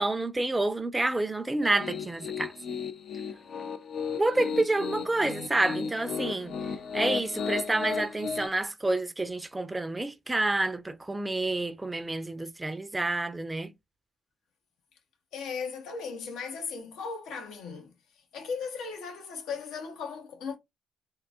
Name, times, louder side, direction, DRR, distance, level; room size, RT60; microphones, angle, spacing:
voice 1, 0.0-2.5 4.1-6.5 6.9-13.7, right 2 dB, 15° right, 0.5 m, -28 dB
Piano, 1.6-8.5, left 5 dB, 65° left, 0.5 m, -34 dB
voice 2, 15.3-17.9 18.3-20.6, left 5 dB, 85° left, 0.9 m, -37 dB
3.8 x 2.6 x 2.4 m
cardioid pair, 90°, 0 cm